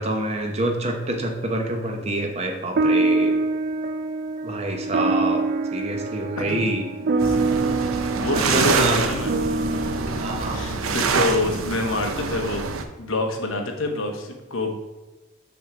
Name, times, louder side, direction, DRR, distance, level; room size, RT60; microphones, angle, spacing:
voice 1, 0.0-3.3 4.4-5.4 5.7-6.9 8.3-9.0 10.2-10.6, right 1 dB, 30° right, 3 dB, 0.8 m, -26 dB
sound 1, 2.8-11.4, right 3 dB, 45° right, 0.4 m, -25 dB
voice 2, 6.4-6.8 7.1-7.5 8.2-9.3 10.5-12.7 13.0-14.7, left 2 dB, 80° left, 3 dB, 1.0 m, -27 dB
sound 2, 7.2-12.8, right 4 dB, 85° right, 0.6 m, -26 dB
6.1 x 3.5 x 6.0 m, 1.1 s
head